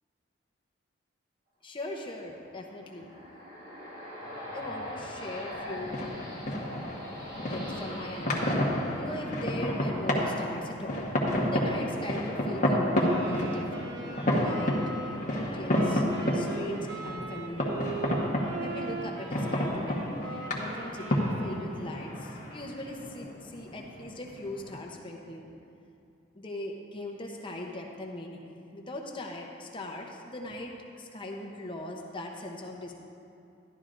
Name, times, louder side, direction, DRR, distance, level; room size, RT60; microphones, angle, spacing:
voice 1, 1.6-3.1 4.5-6.0 7.5-8.4 9.0-11.1 11.4-14.8 15.3-16.0 16.3-17.8 18.6-20.1 20.5-25.5 26.3-28.5 28.7-32.9, left 1 dB, 25° left, 0 dB, 0.8 m, -40 dB
sound 1, 2.5-10.0, left 1 dB, 50° right, 1.9 m, -42 dB
sound 2, 5.5-24.8, equal, 40° left, 1.3 m, -31 dB
Wind instrument woodwind instrument, 12.9-22.0, right 3 dB, 70° right, 1.3 m, -40 dB
12.5 x 11.5 x 2.6 m, 2.7 s
head